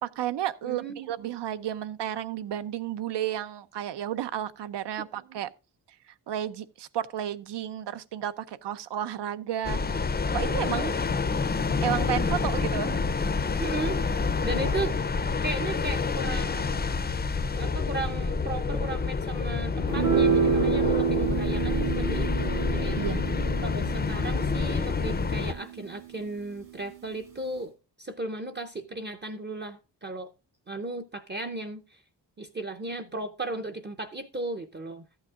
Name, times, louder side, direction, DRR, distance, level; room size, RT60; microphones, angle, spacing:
voice 1, 0.0-5.5 6.1-9.9 10.3-10.9 11.8-13.0 21.2-21.4 23.0-23.3, right 11 dB, 75° right, 0.7 m, -32 dB
voice 2, 0.6-1.2 5.0-5.4 10.6-10.9 13.6-14.0 14.4-14.9 15.4-16.8 17.6-23.0 23.6-27.7 28.0-30.3 30.7-32.0 32.4-35.0, right 2 dB, 25° right, 0.6 m, -36 dB
sound 1, 9.6-25.5, left 4 dB, 25° left, 0.5 m, -28 dB
sound 2, 19.9-26.4, right 7 dB, 55° right, 2.1 m, -29 dB
13.5 x 8.8 x 2.4 m
wide cardioid pair, 170°, 42 cm